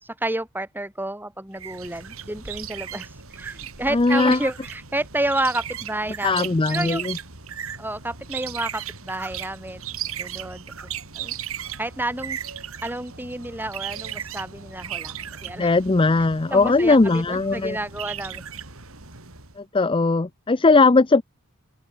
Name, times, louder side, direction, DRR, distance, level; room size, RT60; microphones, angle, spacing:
voice 1, 0.0-7.0 7.8-9.8 10.2-11.3 11.8-12.4 12.8-15.7 16.5-18.5, right 1 dB, 10° right, 4.9 m, -30 dB
sound 1, 1.5-19.6, right 9 dB, 65° right, 3.9 m, -36 dB
voice 2, 3.9-4.4 6.2-7.2 15.6-17.8 19.6-21.2, left 3 dB, 25° left, 0.5 m, -19 dB
open air
head